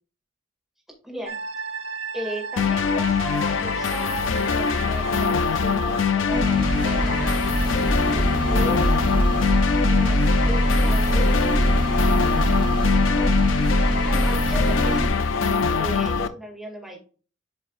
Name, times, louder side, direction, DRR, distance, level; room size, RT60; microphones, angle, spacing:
voice 1, 1.0-1.4 2.1-7.4 8.1-9.0 9.8-10.2 10.4-12.1 13.1-13.3 14.0-15.1 15.7-17.0, equal, ahead, -2 dB, 2.3 m, -36 dB
sound 1, 1.3-16.2, right 4 dB, 75° right, 1.1 m, -39 dB
sound 2, 2.6-16.3, left 5 dB, 75° left, 0.5 m, -23 dB
sound 3, 6.3-15.1, equal, 45° right, 2.2 m, -22 dB
8.8 x 5.3 x 2.4 m, 0.37 s
head